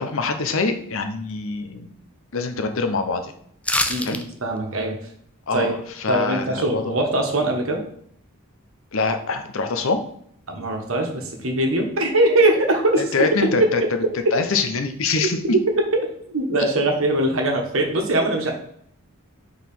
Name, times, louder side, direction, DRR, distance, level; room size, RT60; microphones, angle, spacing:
voice 1, 0.0-1.9 2.3-3.3 4.1-4.2 5.5-7.0 8.9-10.0 13.1-13.8 14.3-15.4, left 3 dB, 65° left, 7 dB, 0.7 m, -24 dB
sound 1, 3.6-4.2 4.6-4.7, left 2 dB, 5° left, 0.4 m, -23 dB
voice 2, 3.9-5.0 5.5-5.8 6.1-7.8 10.5-13.1 13.8-13.9 15.1-16.0 16.3-18.5, right 1 dB, 65° right, 2 dB, 1.3 m, -22 dB
4.7 x 4.0 x 5.3 m, 0.65 s
head